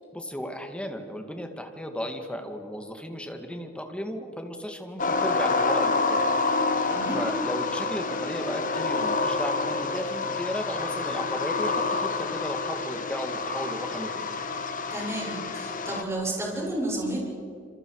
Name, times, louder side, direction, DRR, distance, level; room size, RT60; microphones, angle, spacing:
voice 1, 0.1-6.3 7.1-14.3, equal, 5° left, 4 dB, 2.2 m, -34 dB
sound 1, 5.0-16.0, left 3 dB, 45° left, 1.5 m, -28 dB
voice 2, 6.9-7.2 14.9-17.2, right 1 dB, 15° right, -3 dB, 7.4 m, -31 dB
27.5 x 27.0 x 5.0 m, 2.4 s
head